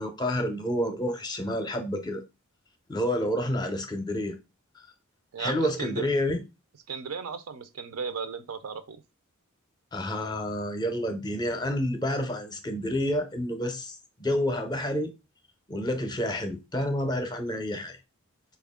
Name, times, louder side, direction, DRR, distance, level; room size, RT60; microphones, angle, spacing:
voice 1, 0.0-2.2 2.9-4.4 5.4-6.4 9.9-15.1 15.7-18.0, left 1 dB, 20° left, 0.5 m, -29 dB
voice 2, 5.3-6.1 6.9-9.0, right 6 dB, 80° right, 0.5 m, -35 dB
4.2 x 2.3 x 3.5 m
head